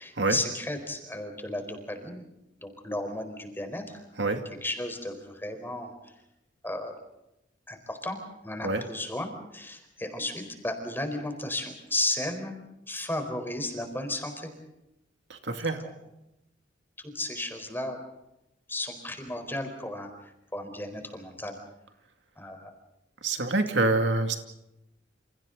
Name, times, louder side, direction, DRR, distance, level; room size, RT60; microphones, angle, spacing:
voice 1, 0.0-2.2 2.6-4.0 4.6-5.9 6.6-6.9 7.7-12.6 12.9-14.5 15.8-15.9 17.0-18.0 18.7-21.6 22.4-22.7, left 1 dB, 10° left, 6 dB, 4.2 m, -34 dB
voice 2, 15.3-15.8 23.2-24.4, right 2 dB, 70° right, 5 dB, 2.4 m, -26 dB
29.0 x 29.0 x 4.0 m, 0.88 s
head